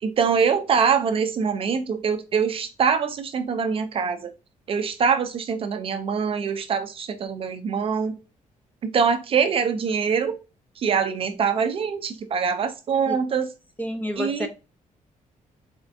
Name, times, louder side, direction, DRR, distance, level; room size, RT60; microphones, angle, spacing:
voice 1, 0.0-4.3 4.7-8.2 8.8-10.4 10.8-13.5 14.2-14.5, right 6 dB, 40° right, 0.4 m, -24 dB
voice 2, 13.8-14.5, equal, 10° left, 0.6 m, -29 dB
4.2 x 3.4 x 2.6 m
cardioid pair, 180°, 14 cm